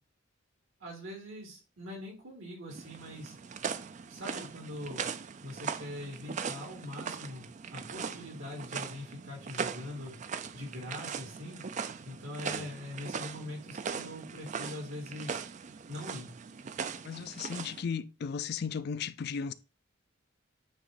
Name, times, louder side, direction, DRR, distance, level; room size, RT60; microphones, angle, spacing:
voice 1, 0.8-3.3 4.1-5.1 5.4-7.4 7.7-10.1 10.5-11.6 12.0-15.4 15.9-16.3, left 1 dB, 80° right, 3.7 m, -42 dB
sound 1, 2.7-17.8, right 6 dB, 35° right, 0.4 m, -40 dB
voice 2, 17.0-19.5, left 6 dB, 55° left, 0.4 m, -36 dB
8.7 x 3.1 x 4.0 m
head